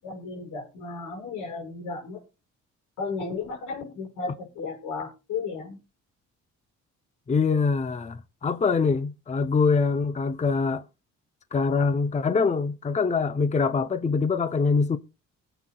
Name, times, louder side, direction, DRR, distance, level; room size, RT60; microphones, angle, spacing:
voice 1, 0.0-2.2 3.0-5.8, left 4 dB, 85° left, 6.2 m, -34 dB
voice 2, 7.3-10.8 11.5-15.0, left 4 dB, 25° left, 0.7 m, -24 dB
22.0 x 8.0 x 2.3 m
cardioid pair, 90°, 30 cm